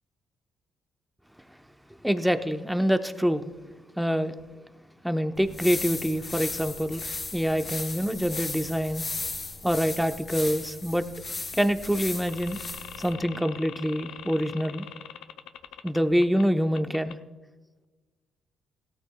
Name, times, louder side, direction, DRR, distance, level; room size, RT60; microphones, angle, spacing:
voice 1, 2.0-3.5 4.0-4.3 5.0-7.0 7.3-9.0 9.6-11.0 11.6-12.6 13.0-14.8 15.8-17.2, equal, ahead, 7 dB, 0.9 m, -26 dB
sound 1, 5.4-13.1, left 3 dB, 40° left, 3.3 m, -36 dB
sound 2, 12.3-16.4 16.8-17.1, left 9 dB, 85° left, 0.6 m, -43 dB
17.5 x 13.5 x 2.3 m, 1.2 s
cardioid pair, 90°, 0 cm